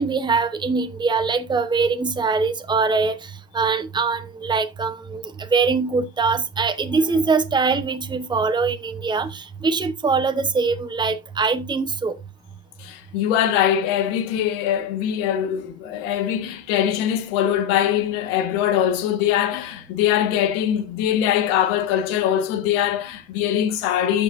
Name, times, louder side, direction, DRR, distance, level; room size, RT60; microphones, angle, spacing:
voice 1, 0.0-12.1, right 4 dB, 10° right, 0.8 m, -22 dB
voice 2, 12.8-24.2, left 10 dB, 90° left, 1.5 m, -22 dB
13.5 x 5.5 x 2.5 m
cardioid pair, 130°, 40 cm